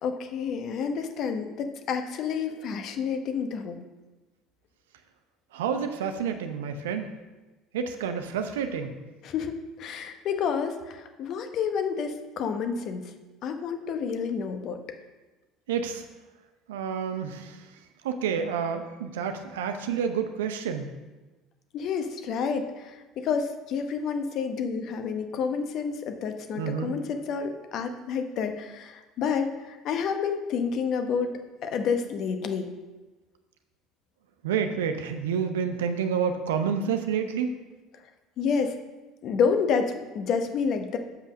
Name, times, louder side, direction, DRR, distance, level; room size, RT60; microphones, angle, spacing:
voice 1, 0.0-3.8 9.2-13.0 13.4-14.8 21.7-31.3 31.6-32.7 38.4-38.8 39.2-41.0, left 6 dB, 55° left, 7 dB, 1.0 m, -29 dB
voice 2, 5.5-7.1 7.7-8.9 15.7-16.0 16.7-17.6 18.0-20.9 26.6-26.9 34.4-37.5, right 7 dB, 80° right, 7 dB, 0.7 m, -29 dB
6.9 x 5.6 x 6.1 m, 1.2 s
hypercardioid pair, 70°, 0 cm